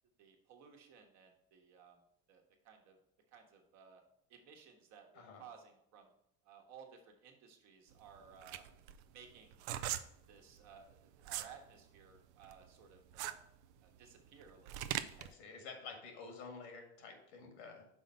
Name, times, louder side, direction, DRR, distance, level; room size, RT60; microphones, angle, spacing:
voice 1, 0.2-2.0 2.3-3.0 3.3-4.0 4.3-6.1 6.4-8.6 9.1-9.7 10.3-13.4 13.8-15.0, right 6 dB, 55° right, 3 dB, 1.4 m, -58 dB
sound 1, 7.9-11.6 12.0-15.3, right 12 dB, 90° right, 0.5 m, -41 dB
voice 2, 15.1-17.8, left 4 dB, 85° left, 3 dB, 1.8 m, -50 dB
5.6 x 4.2 x 5.4 m, 0.78 s
supercardioid pair, 115°, 33 cm